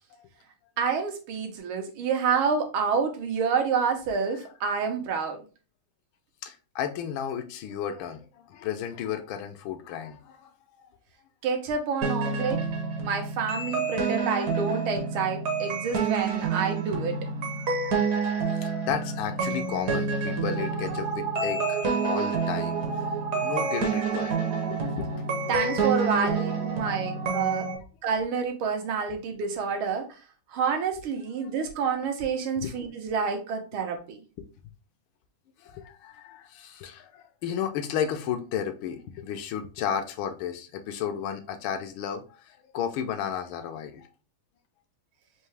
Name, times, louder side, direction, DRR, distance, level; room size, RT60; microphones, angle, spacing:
voice 1, 0.8-5.4 11.4-12.6 13.0-17.2 25.5-27.7 28.0-30.1 30.5-34.2, right 6 dB, 80° right, 5 dB, 1.7 m, -28 dB
voice 2, 6.4-10.9 17.6-23.0 23.4-24.4 24.7-25.1 26.1-26.3 32.6-32.7 34.4-34.5 35.6-44.1, left 8 dB, 75° left, 7 dB, 1.4 m, -33 dB
sound 1, 12.0-27.7, right 4 dB, 55° right, 1.1 m, -28 dB
4.5 x 2.7 x 3.2 m, 0.35 s
omnidirectional pair, 2.3 m